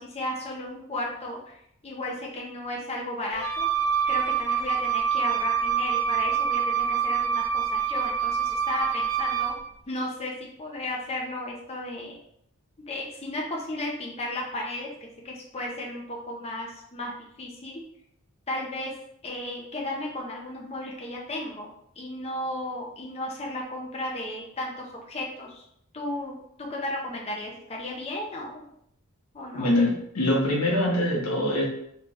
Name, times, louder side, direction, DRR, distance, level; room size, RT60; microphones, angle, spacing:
voice 1, 0.0-3.7 4.1-9.5 9.9-10.3 10.6-12.2 12.8-14.9 15.2-17.1 17.4-17.8 18.5-18.9 19.2-21.7 22.0-25.6 25.9-28.7 29.3-29.7, left 1 dB, 30° left, -2 dB, 0.6 m, -34 dB
Wind instrument woodwind instrument, 3.3-9.6, right 7 dB, 80° right, 0.9 m, -26 dB
voice 2, 29.5-31.6, left 1 dB, 90° left, -2 dB, 1.2 m, -23 dB
3.3 x 3.2 x 3.1 m, 0.71 s
head